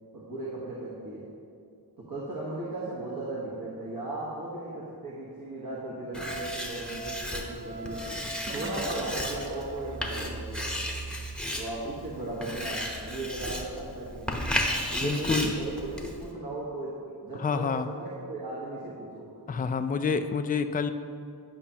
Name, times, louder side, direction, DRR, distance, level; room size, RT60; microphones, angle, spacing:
voice 1, 0.1-1.3 2.0-8.1 8.5-10.8 11.6-14.4 14.9-16.9 17.2-19.3, right 2 dB, 55° right, -7 dB, 1.4 m, -37 dB
Writing, 6.1-16.3, equal, ahead, 0.9 m, -34 dB
Wind instrument woodwind instrument, 6.1-10.1, right 2 dB, 80° right, 0.7 m, -42 dB
Sink (filling or washing), 8.4-10.4 10.7-11.0 11.4-11.5, right 3 dB, 30° right, 0.6 m, -41 dB
voice 2, 15.0-15.5 17.3-17.9 19.5-20.9, left 5 dB, 25° left, 9 dB, 0.3 m, -28 dB
10.0 x 5.6 x 2.9 m, 2.4 s
cardioid pair, 55°, 41 cm